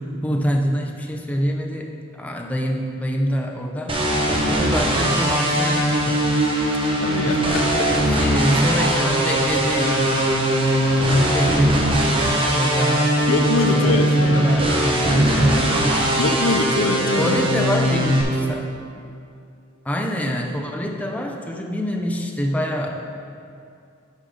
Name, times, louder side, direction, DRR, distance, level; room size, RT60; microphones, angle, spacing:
voice 1, 0.0-4.0 4.6-6.5 6.9-7.5 8.1-10.1 11.1-12.2 12.5-13.2 13.7-15.9 17.2-19.1 19.8-23.2, equal, 5° left, 2 dB, 0.4 m, -25 dB
sound 1, 3.9-18.2, right 1 dB, 25° right, 0.9 m, -20 dB
voice 2, 7.0-7.9 13.3-14.5 16.2-17.4, left 3 dB, 85° left, 6 dB, 0.6 m, -23 dB
10.5 x 3.8 x 4.9 m, 2.4 s
head